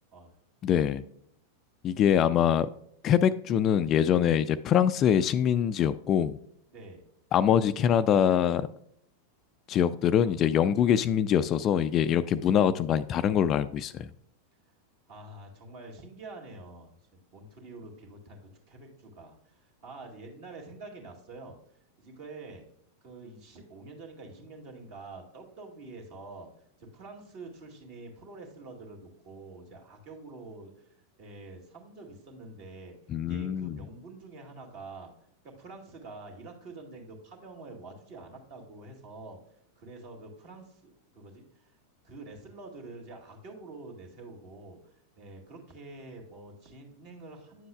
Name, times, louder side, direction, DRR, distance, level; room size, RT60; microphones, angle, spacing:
voice 1, 0.6-1.0 1.8-2.7 3.0-6.4 7.3-8.7 9.7-14.1 33.1-33.8, left 9 dB, 30° left, 13 dB, 0.3 m, -24 dB
voice 2, 6.7-7.0 15.1-16.9 17.3-21.6 22.0-22.6 23.0-26.5 26.8-33.0 33.2-35.1 35.4-39.4 39.8-41.7 42.0-47.7, right 3 dB, 45° right, 2 dB, 2.1 m, -47 dB
9.5 x 7.6 x 2.2 m, 0.71 s
figure-of-eight pair, 90°, 0 cm